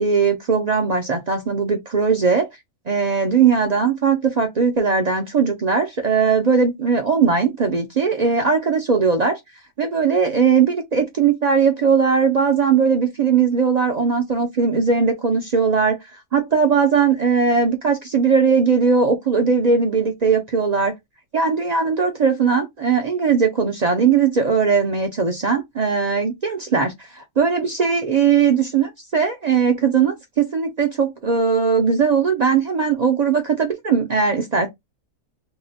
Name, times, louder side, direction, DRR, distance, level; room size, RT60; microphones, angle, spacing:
voice 1, 0.0-2.5 2.9-9.4 9.8-16.0 16.3-20.9 21.3-34.7, right 5 dB, 70° right, 0.4 m, -19 dB
2.8 x 2.1 x 3.9 m
omnidirectional pair, 1.5 m